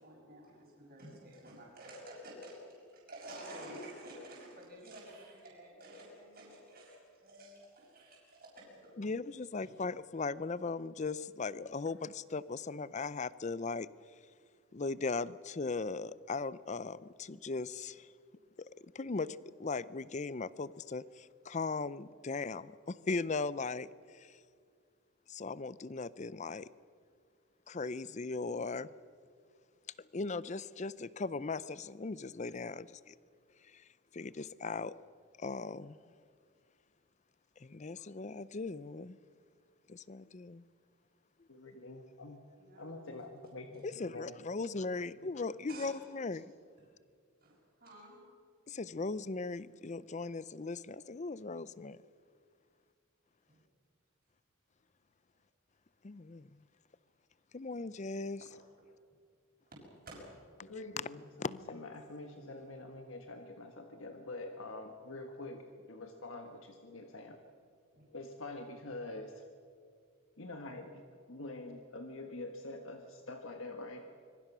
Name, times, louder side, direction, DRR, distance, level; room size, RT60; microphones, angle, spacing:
voice 1, 0.0-9.1 9.6-9.7 34.2-34.3 42.6-43.1 45.7-46.0 46.8-46.9 47.4-48.2 53.5-53.6 58.4-58.5 60.0-60.2 67.9-68.0, right 1 dB, 45° right, -3 dB, 6.5 m, -51 dB
voice 2, 9.0-13.9 14.7-18.1 18.9-24.4 25.3-26.7 27.7-28.9 30.0-33.1 33.6-33.9 34.1-34.9 35.4-36.0 37.6-39.2 39.9-40.6 43.8-46.5 48.7-52.0 56.0-56.5 57.5-58.4 61.4-61.6, left 3 dB, 35° left, 18 dB, 0.5 m, -38 dB
voice 3, 41.5-42.4 42.8-44.4 60.6-67.4 68.1-69.4 70.4-71.0 71.3-74.1, left 2 dB, 65° left, 5 dB, 1.5 m, -46 dB
25.0 x 23.0 x 6.2 m, 2.2 s
head